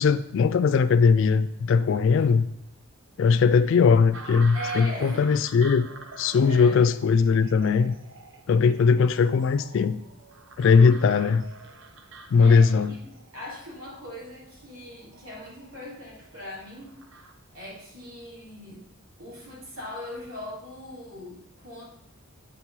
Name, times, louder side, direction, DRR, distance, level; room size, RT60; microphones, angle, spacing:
voice 1, 0.0-2.5 3.2-5.9 6.2-7.9 8.5-10.0 10.6-11.4 12.3-12.9, left 5 dB, 60° left, 12 dB, 0.3 m, -20 dB
sound 1, 4.1-17.3, right 3 dB, 60° right, 0.8 m, -46 dB
voice 2, 4.5-5.4 6.4-6.8 12.4-17.0 17.5-18.8 19.2-21.8, equal, 85° right, -5 dB, 3.2 m, -40 dB
8.1 x 4.5 x 5.5 m, 0.75 s
head